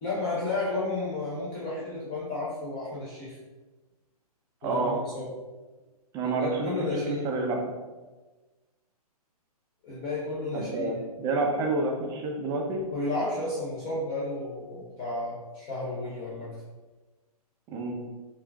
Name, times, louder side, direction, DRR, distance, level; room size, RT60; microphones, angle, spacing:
voice 1, 0.0-3.3 4.6-5.3 6.4-7.3 9.8-11.0 12.9-16.5, left 2 dB, 30° left, -8 dB, 0.8 m, -32 dB
voice 2, 4.6-5.0 6.1-6.7 7.2-7.6 10.5-12.9 17.7-18.0, right 3 dB, 15° right, 0 dB, 0.5 m, -28 dB
5.5 x 2.5 x 2.3 m, 1.2 s
hypercardioid pair, 135°, 20 cm